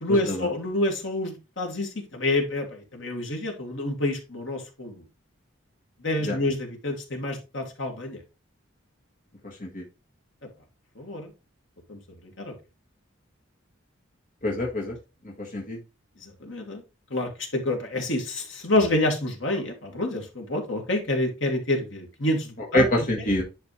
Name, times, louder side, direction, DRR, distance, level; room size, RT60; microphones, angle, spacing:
voice 1, 0.0-5.0 6.0-8.2 11.0-11.3 11.9-12.0 12.4-12.5 16.2-16.8 17.1-22.9 23.2-23.3, left 1 dB, 60° left, 2 dB, 2.3 m, -28 dB
voice 2, 9.4-9.8 14.4-15.0 15.2-15.8 22.7-23.4, left 1 dB, 40° left, -3 dB, 1.6 m, -25 dB
10.5 x 4.3 x 3.3 m, 0.28 s
head